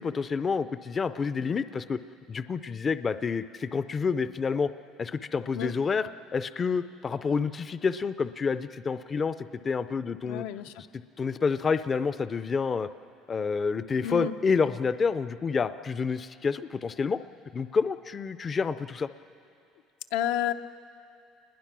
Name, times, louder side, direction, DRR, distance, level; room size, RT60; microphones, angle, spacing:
voice 1, 0.0-2.0 2.3-4.7 5.0-10.4 10.8-10.9 11.2-12.9 13.3-17.2 17.5-19.1, left 5 dB, 25° left, 13 dB, 0.4 m, -28 dB
voice 2, 10.2-10.7 14.0-14.3 20.1-20.5, left 10 dB, 85° left, 9 dB, 0.7 m, -30 dB
28.0 x 20.5 x 6.1 m, 2.5 s
cardioid pair, 150°, 0 cm